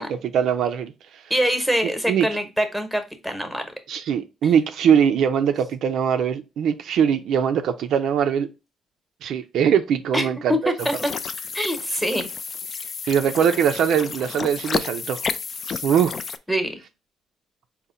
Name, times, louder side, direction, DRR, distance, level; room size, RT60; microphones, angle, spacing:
voice 1, 0.0-1.2 2.1-2.3 3.9-8.5 9.2-10.7 13.1-15.2 15.7-16.1, right 8 dB, 75° right, 0.4 m, -21 dB
voice 2, 1.3-3.7 4.4-4.5 10.1-10.6 10.8-10.9 11.5-12.3 16.5-16.8, equal, ahead, 0.9 m, -24 dB
sound 1, 10.8-16.4, left 5 dB, 45° left, 0.3 m, -31 dB
4.1 x 2.1 x 3.7 m
cardioid pair, 90°, 0 cm